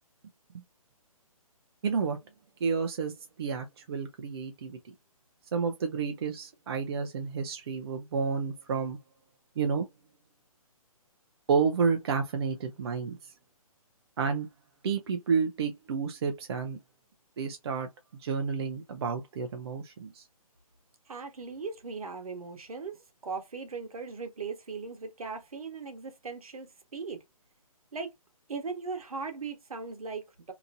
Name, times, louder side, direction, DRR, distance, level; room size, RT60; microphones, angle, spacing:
voice 1, 1.8-2.2 2.6-4.8 5.5-9.0 9.6-9.9 11.5-13.3 14.2-14.5 14.8-16.8 17.4-17.9 18.2-20.3, right 5 dB, 45° right, 0.5 m, -30 dB
voice 2, 21.1-27.2 27.9-28.1 28.5-30.5, right 4 dB, 70° right, 1.0 m, -38 dB
2.8 x 2.5 x 2.5 m
figure-of-eight pair, 145°, 19 cm